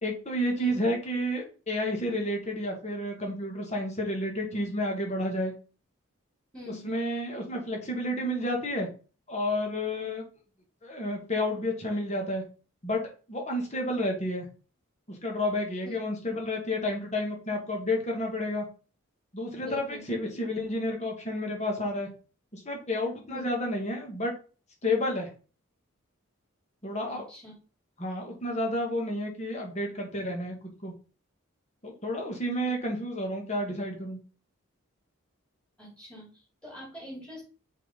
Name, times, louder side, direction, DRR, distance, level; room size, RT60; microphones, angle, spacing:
voice 1, 0.0-5.5 6.7-8.9 9.3-10.3 10.8-12.4 12.8-13.0 13.3-14.5 15.1-18.7 19.3-22.1 22.5-24.3 24.8-25.3 26.8-27.2 28.0-30.5 30.8-30.9 31.8-34.2, left 1 dB, 30° left, 1 dB, 1.8 m, -30 dB
voice 2, 6.5-6.9 15.8-15.9 19.6-20.1 23.3-23.5 27.1-27.5 32.6-32.7 35.8-37.4, equal, 5° left, -5 dB, 3.8 m, -44 dB
6.4 x 4.0 x 5.3 m, 0.36 s
head